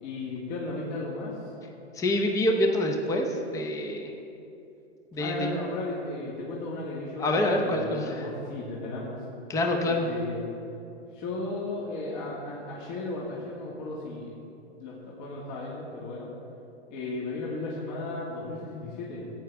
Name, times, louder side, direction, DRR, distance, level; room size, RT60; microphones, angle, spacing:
voice 1, 0.0-1.4 5.2-9.2 9.8-10.4 11.1-14.3 14.8-16.3 16.9-19.3, left 2 dB, 45° left, -5 dB, 2.0 m, -35 dB
voice 2, 1.9-4.1 5.1-5.5 7.2-8.3 9.5-10.1, left 1 dB, 10° left, 3 dB, 0.7 m, -26 dB
16.0 x 8.7 x 3.5 m, 2.7 s
hypercardioid pair, 135°, 33 cm